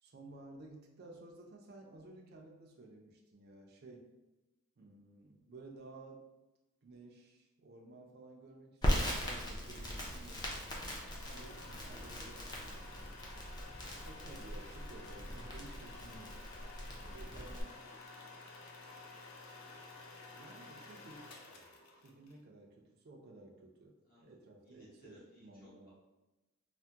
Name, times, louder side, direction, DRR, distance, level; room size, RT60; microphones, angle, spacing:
voice 1, 0.0-4.1 4.8-6.3 6.8-10.5 11.3-13.1 14.1-16.4 17.1-17.7 20.4-21.3 22.0-25.9, right 2 dB, 50° right, 0 dB, 0.4 m, -54 dB
Crackle, 8.8-17.6, equal, 20° left, 0.5 m, -39 dB
sound 1, 10.0-22.3, left 3 dB, 80° left, 0.5 m, -52 dB
voice 2, 11.2-11.6 11.9-13.0 16.5-17.9 18.2-18.3 22.1-22.3 24.0-25.9, equal, 45° left, -8 dB, 0.9 m, -62 dB
3.3 x 2.1 x 2.7 m, 1.1 s
head